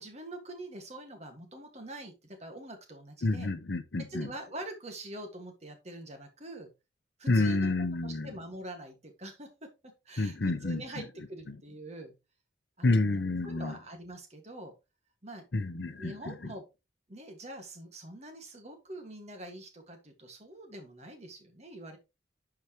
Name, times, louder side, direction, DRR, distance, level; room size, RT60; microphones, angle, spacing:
voice 1, 0.0-3.5 4.1-6.7 7.2-7.7 8.0-9.7 10.0-11.0 11.3-12.1 12.8-12.9 13.4-14.7 15.2-15.5 16.0-16.6 17.1-22.0, right 1 dB, 35° right, 1.7 m, -44 dB
voice 2, 3.2-4.3 7.3-8.3 10.2-11.1 11.5-11.6 12.8-13.8 15.5-16.4, left 2 dB, 55° left, 0.7 m, -29 dB
10.5 x 4.8 x 2.9 m
head